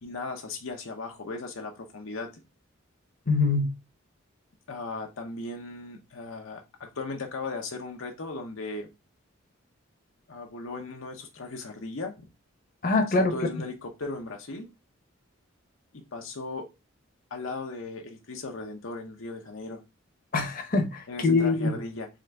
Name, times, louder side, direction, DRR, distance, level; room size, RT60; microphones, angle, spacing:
voice 1, 0.0-2.3 4.7-8.9 10.3-12.3 13.1-14.7 15.9-16.7 17.3-19.8 21.1-22.1, left 3 dB, 75° left, 0.8 m, -37 dB
voice 2, 3.3-3.7 12.8-13.3 20.3-21.7, left 3 dB, 40° left, 0.9 m, -24 dB
3.8 x 3.8 x 3.3 m
head